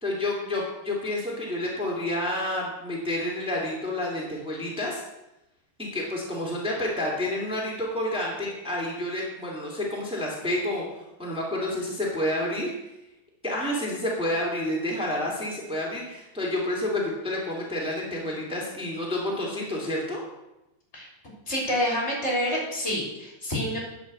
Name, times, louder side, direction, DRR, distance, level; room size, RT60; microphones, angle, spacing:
voice 1, 0.0-5.0 5.8-12.7 13.4-20.2, left 1 dB, 5° right, -4 dB, 0.5 m, -29 dB
voice 2, 21.5-23.8, equal, 15° left, -3 dB, 2.7 m, -27 dB
10.5 x 7.0 x 7.8 m, 0.94 s
omnidirectional pair, 5.4 m